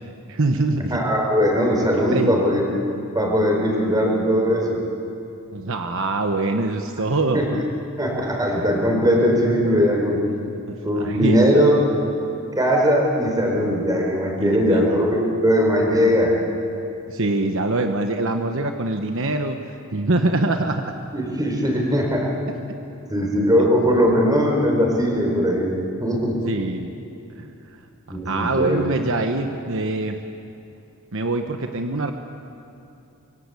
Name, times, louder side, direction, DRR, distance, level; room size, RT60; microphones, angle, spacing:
voice 1, 0.3-1.0 2.0-2.3 5.5-7.6 11.0-11.4 14.4-15.0 17.1-20.8 26.4-27.0 27.4-27.5 28.1-30.2 31.1-32.1, right 2 dB, 60° right, 5 dB, 1.1 m, -24 dB
voice 2, 0.9-2.6 3.1-4.8 7.3-7.5 8.0-10.2 10.8-11.8 12.5-16.4 21.1-22.3 23.1-26.5 28.1-28.8, equal, 15° right, 0 dB, 4.8 m, -20 dB
25.0 x 23.0 x 8.3 m, 2.7 s
head